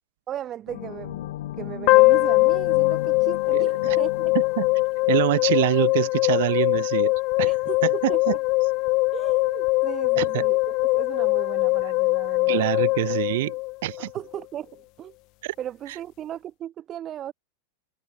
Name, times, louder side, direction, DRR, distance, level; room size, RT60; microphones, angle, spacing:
voice 1, 0.3-4.3 7.4-8.4 9.1-12.7 14.0-15.1 15.6-17.3, right 11 dB, 25° right, 0.6 m, -37 dB
sound 1, 0.7-6.0, left 14 dB, 75° left, 1.3 m, -38 dB
sound 2, 1.9-14.1, left 24 dB, 40° left, 0.4 m, -22 dB
voice 2, 3.5-4.0 4.6-4.7 5.1-7.1 7.4-7.6 7.8-7.9 8.3-8.4 10.2-10.5 12.5-13.5 13.8-14.1 15.4-15.5, right 17 dB, 65° right, 0.6 m, -25 dB
supercardioid pair, 150°, 0 cm